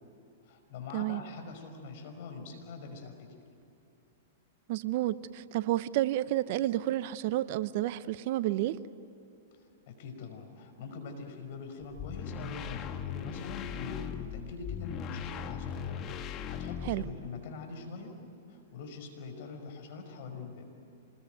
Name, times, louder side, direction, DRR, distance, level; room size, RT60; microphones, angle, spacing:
voice 1, 0.4-3.3 9.9-18.1 18.5-20.7, left 4 dB, 60° left, 5 dB, 5.5 m, -44 dB
voice 2, 4.7-8.8 16.9-17.0, right 14 dB, 55° right, 16 dB, 0.8 m, -30 dB
sound 1, 12.0-17.3, left 7 dB, 35° left, 1.7 m, -38 dB
26.5 x 21.0 x 9.3 m, 2.8 s
hypercardioid pair, 115°, 0 cm